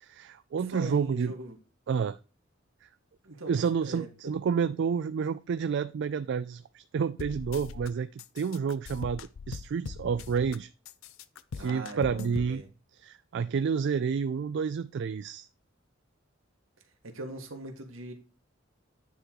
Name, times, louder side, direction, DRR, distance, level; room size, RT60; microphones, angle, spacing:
voice 1, 0.0-1.3 1.9-2.2 3.5-8.1 8.3-10.7 11.5-12.6 13.0-15.5, right 6 dB, 60° right, 0.3 m, -29 dB
voice 2, 0.6-1.6 3.2-3.5 3.8-4.3 11.6-12.7 17.0-18.1, right 2 dB, 75° right, 1.6 m, -41 dB
sound 1, 7.2-7.9 8.2-10.6 10.9-12.5, left 4 dB, 85° left, 0.5 m, -40 dB
9.4 x 3.8 x 4.5 m
head